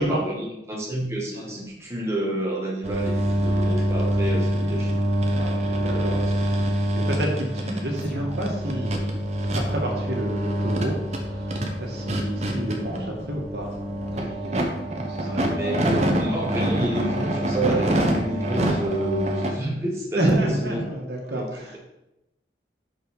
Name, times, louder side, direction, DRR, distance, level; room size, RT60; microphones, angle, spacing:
voice 1, 0.0-5.0 5.7-6.5 15.2-20.8 21.3-21.5, right 1 dB, 15° right, -3 dB, 1.4 m, -29 dB
sound 1, 2.8-19.5, equal, 40° right, 1.0 m, -25 dB
voice 2, 5.4-6.2 6.5-9.1 9.5-11.5 11.8-13.7 14.0-16.1 20.1-21.8, right 1 dB, 75° right, 0 dB, 1.7 m, -29 dB
sound 2, 8.0-15.5, left 2 dB, 10° left, 2.6 m, -43 dB
6.1 x 5.5 x 5.3 m, 0.90 s
head